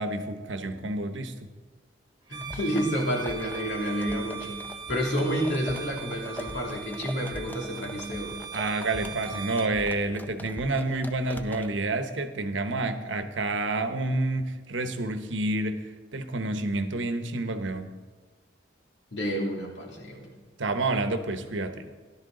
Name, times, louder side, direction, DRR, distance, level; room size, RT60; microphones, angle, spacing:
voice 1, 0.0-1.3 8.5-17.9 20.6-22.0, right 2 dB, 85° right, 9 dB, 1.0 m, -29 dB
voice 2, 2.3-8.4 19.1-20.4, equal, 75° left, -1 dB, 2.8 m, -30 dB
sound 1, 2.3-11.7, left 1 dB, 10° left, 0.5 m, -43 dB
Bowed string instrument, 2.3-9.8, right 6 dB, 20° right, 1.2 m, -40 dB
14.0 x 11.5 x 3.9 m, 1.4 s
head